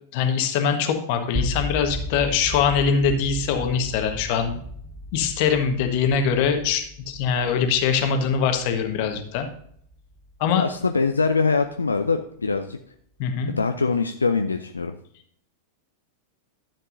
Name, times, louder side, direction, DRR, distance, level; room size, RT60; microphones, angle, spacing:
voice 1, 0.1-4.6 5.1-9.5 10.4-10.6 13.2-13.5, left 6 dB, 45° left, 6 dB, 1.4 m, -23 dB
sound 1, 1.3-11.3, left 1 dB, 5° right, 0.8 m, -36 dB
voice 2, 10.6-12.8 13.5-14.9, left 4 dB, 75° left, 7 dB, 0.4 m, -23 dB
12.5 x 7.5 x 2.7 m, 0.64 s
figure-of-eight pair, 90°, 0 cm